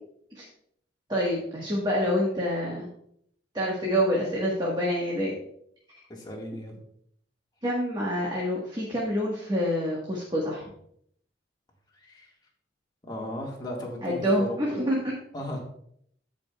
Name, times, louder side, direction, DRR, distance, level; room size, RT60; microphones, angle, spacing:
voice 1, 1.1-2.9 3.5-5.3 7.6-10.7 14.0-15.0, equal, 25° right, -4 dB, 1.4 m, -27 dB
voice 2, 6.1-6.8 12.0-12.3 13.1-14.6 15.3-15.6, left 1 dB, 25° left, -2 dB, 1.7 m, -36 dB
15.0 x 5.2 x 2.3 m, 0.68 s
head